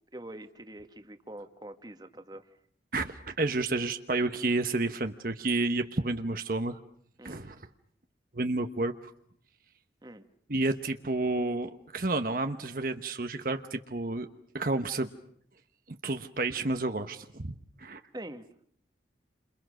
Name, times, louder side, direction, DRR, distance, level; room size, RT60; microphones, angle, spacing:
voice 1, 0.1-2.5 7.2-7.4 10.0-10.2 18.1-18.5, right 1 dB, 20° right, 8 dB, 1.5 m, -44 dB
voice 2, 2.9-6.8 7.2-7.6 8.3-8.9 10.5-14.3 14.5-15.1 16.0-17.5 17.8-18.0, right 2 dB, 50° right, 7 dB, 1.1 m, -30 dB
29.5 x 27.0 x 6.4 m, 0.64 s
head